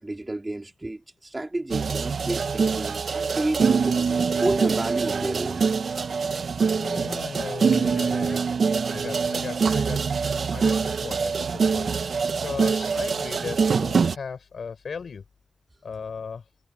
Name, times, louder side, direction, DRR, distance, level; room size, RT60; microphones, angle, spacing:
voice 1, 0.0-4.0 4.4-5.7, right 2 dB, 25° right, 4.1 m, -30 dB
sound 1, 1.7-14.1, right 5 dB, 85° right, 0.9 m, -24 dB
voice 2, 6.7-8.4 8.9-10.0 10.5-11.9 12.4-15.2 15.8-16.4, left 5 dB, 85° left, 7.0 m, -36 dB
wide cardioid pair, 110°, 0 cm